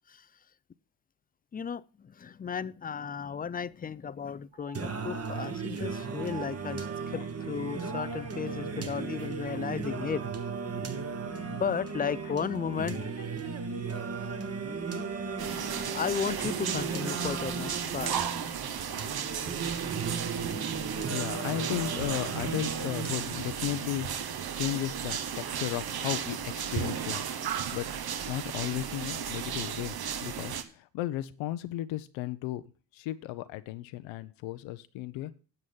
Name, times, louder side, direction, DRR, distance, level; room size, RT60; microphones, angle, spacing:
voice 1, 1.5-10.2 11.5-13.5 15.8-18.2, left 7 dB, 20° left, 0.5 m, -35 dB
sound 1, 3.6-3.7 4.0-4.1 4.5-5.5 6.1-7.2 7.6-8.6 9.9-10.0, right 14 dB, 65° right, 1.3 m, -49 dB
Singing, 4.7-23.7, right 5 dB, 30° right, 1.5 m, -36 dB
sound 2, 15.4-30.6, right 8 dB, 50° right, 1.2 m, -35 dB
voice 2, 21.1-24.1 24.5-27.3 27.7-32.6 32.9-35.3, left 15 dB, 75° left, 0.8 m, -35 dB
9.6 x 7.6 x 5.5 m
hypercardioid pair, 55°, 47 cm